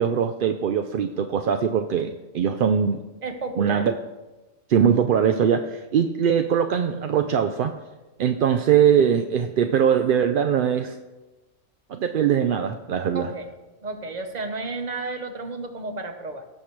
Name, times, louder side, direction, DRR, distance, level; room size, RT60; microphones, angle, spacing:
voice 1, 0.0-3.0 3.6-3.9 4.7-7.7 8.2-11.0 11.9-13.3, right 8 dB, 60° right, 7 dB, 0.5 m, -21 dB
voice 2, 3.2-3.9 13.1-13.5 13.8-16.4, right 3 dB, 35° right, 7 dB, 1.0 m, -32 dB
17.5 x 6.5 x 3.2 m, 1.1 s
omnidirectional pair, 1.3 m